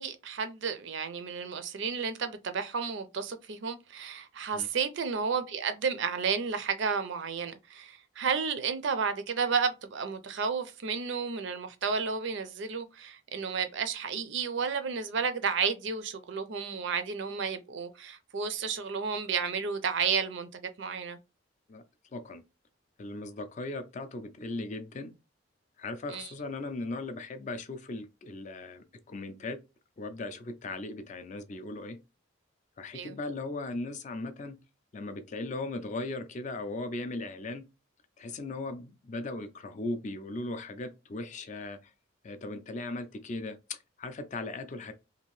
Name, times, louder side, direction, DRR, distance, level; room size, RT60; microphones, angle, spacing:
voice 1, 0.0-21.2 26.1-26.3 32.9-33.2, right 5 dB, 60° right, 0.4 m, -32 dB
voice 2, 22.1-22.4 23.0-25.1 25.8-29.6 30.0-32.0 32.8-34.6 34.9-37.6 38.2-41.9 42.2-44.9, left 2 dB, 35° left, 0.4 m, -38 dB
2.8 x 2.5 x 3.0 m
head